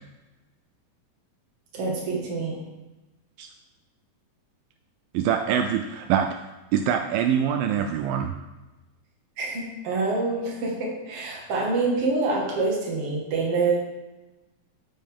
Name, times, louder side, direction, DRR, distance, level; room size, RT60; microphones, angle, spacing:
voice 1, 1.7-2.6 9.4-14.0, right 3 dB, 45° right, -3 dB, 2.5 m, -26 dB
voice 2, 5.1-6.3 6.7-8.3, right 8 dB, 80° right, 5 dB, 2.1 m, -24 dB
8.8 x 8.1 x 3.7 m, 1.1 s
omnidirectional pair, 4.3 m